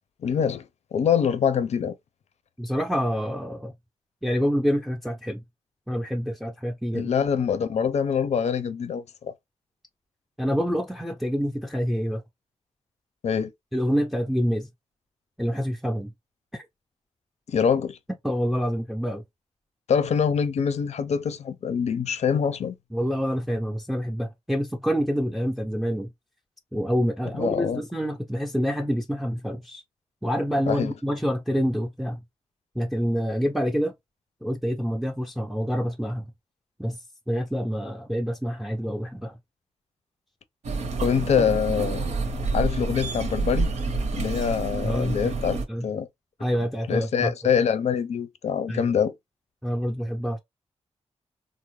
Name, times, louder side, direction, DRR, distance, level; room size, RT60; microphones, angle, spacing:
voice 1, 0.2-2.0 6.9-9.3 13.2-13.5 17.5-18.0 19.9-22.7 27.4-27.8 30.7-30.9 41.0-42.1 42.5-43.7 44.1-45.6 45.8-46.1 46.9-49.1, left 7 dB, 75° left, 0.5 m, -24 dB
voice 2, 2.6-3.7 4.2-5.4 5.9-7.1 10.4-12.2 13.7-14.7 15.4-16.1 16.5-16.6 18.2-19.2 22.9-26.1 26.7-29.8 30.2-32.2 32.8-33.9 34.4-36.3 36.8-37.0 37.3-39.3 44.8-45.4 45.7-45.9 46.4-47.3 48.7-48.8 49.6-50.4, equal, ahead, 0.5 m, -27 dB
sound 1, 40.6-45.7, right 3 dB, 85° right, 0.8 m, -28 dB
3.7 x 2.0 x 3.1 m
wide cardioid pair, 110°, 11 cm